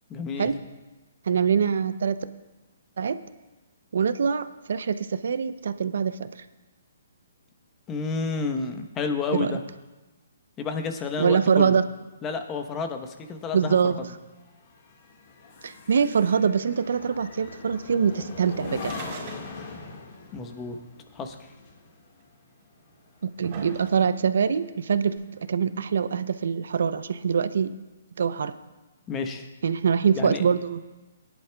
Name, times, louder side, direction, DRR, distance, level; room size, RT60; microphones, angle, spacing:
voice 1, 0.1-0.5 7.9-9.6 10.6-11.8 12.2-14.0 20.3-20.8 21.1-21.5 29.1-29.5 30.1-30.5, left 4 dB, 20° left, 6 dB, 0.9 m, -30 dB
voice 2, 1.3-2.2 3.0-3.2 3.9-6.5 9.4-9.6 11.2-11.8 13.5-13.9 15.6-18.9 23.2-25.2 25.5-27.7 28.2-28.5 29.6-30.8, right 6 dB, 70° right, 13 dB, 0.6 m, -24 dB
sound 1, 12.4-24.0 24.4-24.7, left 4 dB, 45° left, 1.6 m, -42 dB
sound 2, 18.9-19.9 20.1-20.2 21.2-21.3 22.2-22.3 23.0-24.3 25.2-25.3, right 5 dB, 45° right, 3.3 m, -42 dB
19.5 x 10.5 x 2.3 m, 1.2 s
hypercardioid pair, 145°, 0 cm